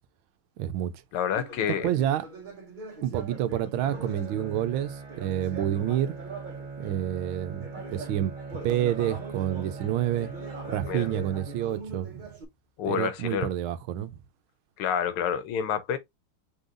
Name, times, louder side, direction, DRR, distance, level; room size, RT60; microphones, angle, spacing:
voice 1, 0.6-1.0 1.7-2.3 3.0-6.2 6.8-8.3 8.6-10.3 10.7-12.3 12.8-14.1, right 11 dB, 75° right, 1.4 m, -28 dB
voice 2, 1.1-1.9 10.9-11.1 12.8-13.5 14.8-16.0, left 8 dB, 80° left, 1.7 m, -28 dB
Conversation, 1.3-7.1 7.5-12.4, right 2 dB, 35° right, 0.8 m, -42 dB
Bowed string instrument, 3.8-12.1, right 4 dB, 10° right, 2.1 m, -41 dB
5.6 x 3.7 x 2.5 m
omnidirectional pair, 2.4 m